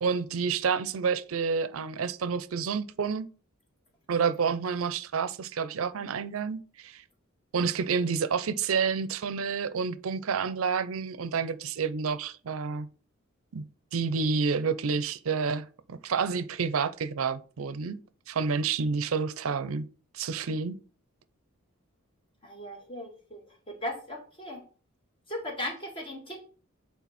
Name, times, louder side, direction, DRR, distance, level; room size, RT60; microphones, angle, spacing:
voice 1, 0.0-3.3 4.1-7.0 7.5-12.9 13.5-13.6 13.9-18.0 18.3-19.9 20.1-20.8, right 5 dB, 75° right, 0.5 m, -29 dB
voice 2, 22.4-23.4 23.7-24.6 25.3-26.4, left 1 dB, 25° left, 1.8 m, -37 dB
8.5 x 3.7 x 4.2 m
head